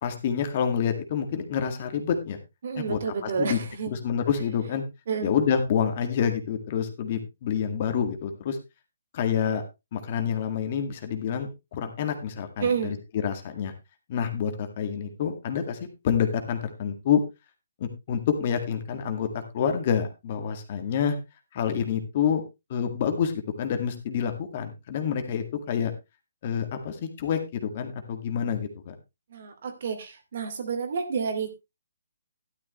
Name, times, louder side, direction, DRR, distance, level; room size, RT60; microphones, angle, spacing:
voice 1, 0.0-2.4 2.7-3.6 3.9-4.8 5.2-8.6 9.1-9.6 9.9-13.7 14.1-17.2 17.8-21.2 21.5-22.4 22.7-25.9 26.4-28.9, left 7 dB, 40° left, 7 dB, 1.9 m, -28 dB
voice 2, 2.6-3.9 5.1-5.3 12.6-12.9 29.3-31.5, right 5 dB, 55° right, 7 dB, 2.6 m, -29 dB
12.0 x 9.9 x 3.1 m, 0.24 s
hypercardioid pair, 160°, 0 cm